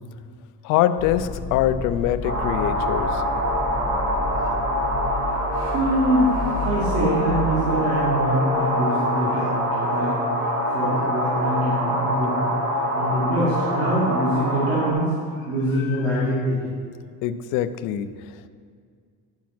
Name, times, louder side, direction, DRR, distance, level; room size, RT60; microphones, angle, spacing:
voice 1, 0.6-3.2 15.7-16.3 17.2-18.3, left 11 dB, 60° left, 12 dB, 0.5 m, -24 dB
sound 1, 1.0-7.8, left 3 dB, ahead, 1.1 m, -31 dB
sound 2, 2.2-14.9, equal, 50° right, 2.1 m, -25 dB
voice 2, 5.5-12.5 12.9-15.1 15.5-16.7, right 1 dB, 80° right, -7 dB, 2.5 m, -24 dB
10.5 x 4.7 x 6.0 m, 2.1 s
cardioid pair, 165°, 35 cm